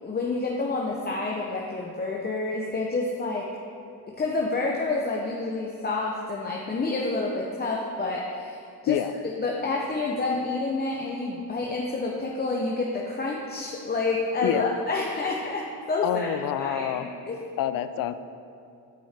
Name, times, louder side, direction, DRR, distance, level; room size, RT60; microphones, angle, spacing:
voice 1, 0.0-3.5 4.1-16.3 16.6-17.4, left 3 dB, 25° left, -2 dB, 0.7 m, -29 dB
voice 2, 16.0-17.1 17.6-18.1, left 11 dB, 55° left, 12 dB, 0.5 m, -27 dB
8.7 x 5.3 x 3.4 m, 2.7 s
supercardioid pair, 75°, 40 cm